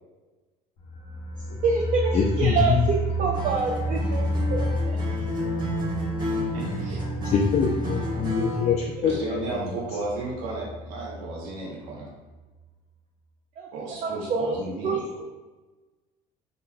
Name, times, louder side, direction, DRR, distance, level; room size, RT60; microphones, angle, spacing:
sound 1, 0.8-11.5 11.8-11.9 12.2-12.3, equal, 75° left, 1.1 m, -31 dB
voice 1, 1.6-5.0 13.6-13.7 14.0-14.6 14.8-15.2, right 4 dB, 40° right, -2 dB, 0.6 m, -26 dB
voice 2, 2.1-2.9 7.2-9.7, left 6 dB, 35° left, -1 dB, 0.5 m, -25 dB
Acoustic guitar, 3.3-8.7, equal, 25° right, 1.1 m, -31 dB
voice 3, 6.5-7.0 9.0-12.1 13.7-15.0, right 2 dB, 80° right, -3 dB, 1.0 m, -34 dB
3.9 x 3.8 x 2.2 m, 1.2 s
supercardioid pair, 80°, 19 cm